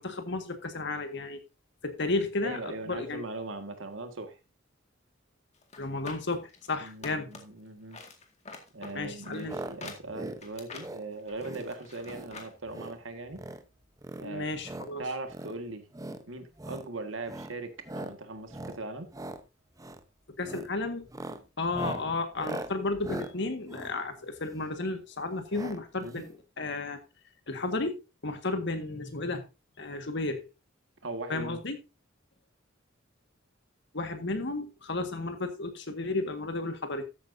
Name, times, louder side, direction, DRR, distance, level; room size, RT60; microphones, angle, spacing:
voice 1, 0.0-1.4 1.8-3.3 5.8-7.3 9.0-9.6 14.2-15.1 20.4-21.1 21.6-27.0 27.5-29.4 29.8-30.5 31.3-31.8 33.9-37.0, left 2 dB, 65° left, 1.7 m, -33 dB
voice 2, 2.4-4.4 6.8-8.0 8.7-13.4 14.2-14.5 15.0-15.9 16.3-19.1 26.0-26.2 31.0-31.6, right 2 dB, 75° right, 1.8 m, -39 dB
sound 1, 5.6-7.6 7.9-12.5 12.8-12.9, left 3 dB, 35° left, 2.0 m, -46 dB
sound 2, 9.4-9.7 10.0-10.4 10.7-11.0 11.4-11.7 12.0-12.3 12.6-13.0 13.3-13.6 14.0-14.9 15.3-15.5 15.9-16.2 16.6-16.9 17.2-17.5 17.8-18.1 18.5-18.8 19.1-19.4 19.8-20.0 20.4-20.7 21.0-24.7 25.5-25.8 26.1-26.2 26.3-26.4, right 2 dB, 20° right, 0.9 m, -40 dB
13.5 x 8.8 x 2.7 m
head